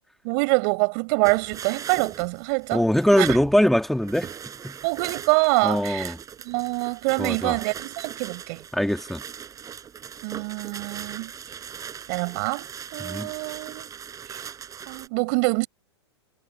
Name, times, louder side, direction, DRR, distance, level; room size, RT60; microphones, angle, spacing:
voice 1, 0.2-2.8 3.2-3.3 4.8-6.1 6.5-8.6 10.2-11.3 12.1-12.7 12.9-13.9 14.9-15.7, right 34 dB, 50° right, 5.2 m, -25 dB
sound 1, 1.2-15.1, right 8 dB, 25° right, 5.5 m, -39 dB
voice 2, 2.7-4.4 4.6-4.8 5.6-6.2 7.2-7.6 8.7-9.2 13.0-13.3, equal, ahead, 2.8 m, -22 dB
hypercardioid pair, 120°, 15 cm